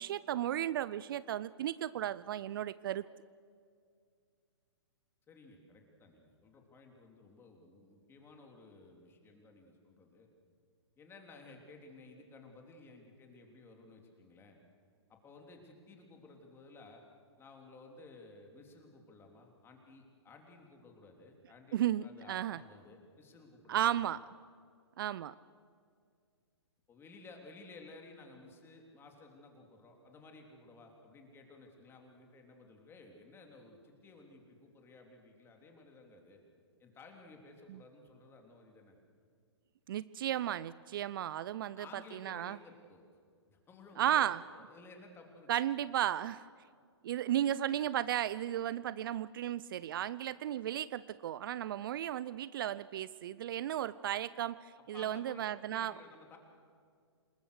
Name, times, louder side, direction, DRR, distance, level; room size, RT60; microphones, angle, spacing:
voice 1, 0.0-3.0 21.7-22.6 23.7-24.2 25.0-25.3 37.7-37.8 39.9-41.9 42.1-42.6 44.0-44.4 45.5-46.5 47.0-55.9, right 11 dB, 50° right, 18 dB, 0.5 m, -34 dB
voice 2, 5.3-10.3 11.0-14.6 15.1-17.0 17.4-24.0 26.9-36.4 36.8-38.9 41.5-43.0 43.5-45.5 54.9-56.4, left 3 dB, 15° left, 2 dB, 3.3 m, -56 dB
27.5 x 20.0 x 6.5 m, 2.2 s
hypercardioid pair, 130°, 15 cm